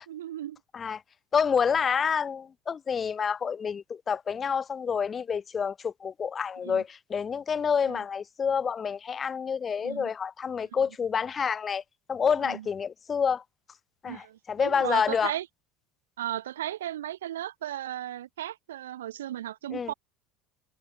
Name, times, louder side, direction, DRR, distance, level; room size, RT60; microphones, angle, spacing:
voice 1, 0.1-0.6 6.6-6.8 7.9-8.0 9.8-10.1 12.4-12.7 14.0-15.5 16.2-19.9, right 12 dB, 70° right, 0.5 m, -35 dB
voice 2, 1.3-11.8 12.1-13.4 14.0-15.3 19.7-19.9, left 6 dB, 30° left, 0.4 m, -28 dB
figure-of-eight pair, 70°, 0 cm